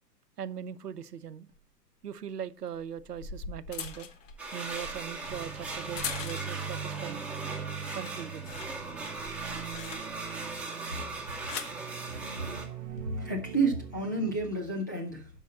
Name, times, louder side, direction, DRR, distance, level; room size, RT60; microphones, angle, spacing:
voice 1, 0.4-1.5 2.0-4.1 4.5-7.2 7.9-8.5, right 8 dB, 75° right, 0.8 m, -40 dB
sound 1, 1.5-1.6 2.8-6.7 7.2-7.5 7.8-10.4 11.1-11.8 12.7-13.0, left 6 dB, 35° left, 1.2 m, -42 dB
sound 2, 4.4-12.7, right 3 dB, ahead, 1.8 m, -39 dB
sound 3, 5.3-14.4, right 8 dB, 55° right, 1.0 m, -42 dB
voice 2, 13.1-15.3, right 3 dB, 15° left, 0.3 m, -30 dB
11.5 x 5.5 x 4.2 m
figure-of-eight pair, 120°, 49 cm